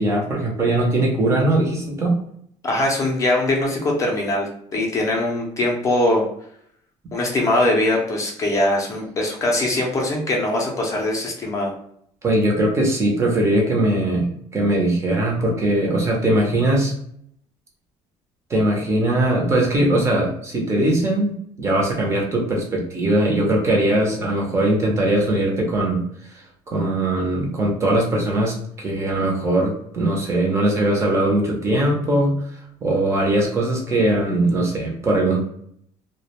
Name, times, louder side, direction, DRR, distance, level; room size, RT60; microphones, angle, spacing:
voice 1, 0.0-2.1 12.2-16.9 18.5-21.3 21.6-26.0 26.3-32.4 32.8-35.5, right 1 dB, 25° right, -1 dB, 0.5 m, -20 dB
voice 2, 2.6-6.3 7.1-11.7, left 1 dB, 25° left, -1 dB, 0.5 m, -21 dB
2.3 x 2.1 x 2.8 m, 0.67 s
cardioid pair, 165°, 12 cm